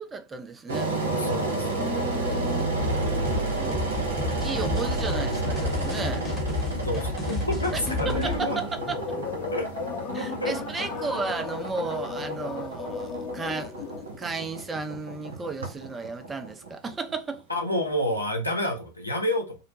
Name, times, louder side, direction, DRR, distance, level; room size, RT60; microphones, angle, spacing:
voice 1, 0.0-0.9 1.8-2.7 3.5-4.0 4.4-6.3 7.7-9.0 10.1-13.8 14.2-17.4, right 4 dB, 20° right, 0.4 m, -34 dB
Engine, 0.7-17.6, right 2 dB, 75° right, 0.6 m, -31 dB
voice 2, 1.1-1.8 6.8-8.6 9.5-9.9 10.2-10.5 11.0-11.2 17.5-19.6, left 1 dB, 90° left, 0.6 m, -29 dB
sound 1, 2.8-8.4, left 3 dB, 20° left, 0.9 m, -31 dB
sound 2, 7.7-14.2, left 5 dB, 45° left, 0.5 m, -35 dB
2.5 x 2.1 x 2.9 m
figure-of-eight pair, 80°, 0 cm